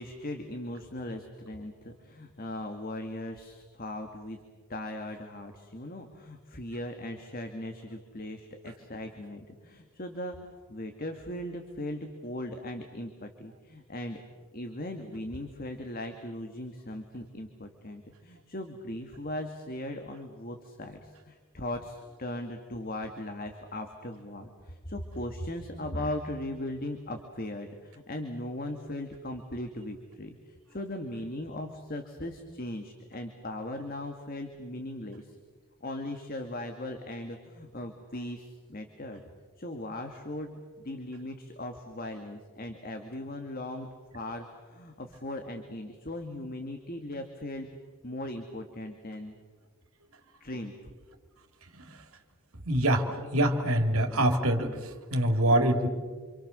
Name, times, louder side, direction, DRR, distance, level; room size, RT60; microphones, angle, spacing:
voice 1, 0.0-4.4 4.7-14.2 14.5-30.4 30.7-35.4 35.8-39.2 39.6-43.9 44.1-47.7 48.0-49.4 50.4-50.7, left 1 dB, 40° left, 5 dB, 2.0 m, -38 dB
voice 2, 52.6-55.9, right 1 dB, 75° right, 5 dB, 3.1 m, -25 dB
28.0 x 26.5 x 6.8 m, 1.5 s
head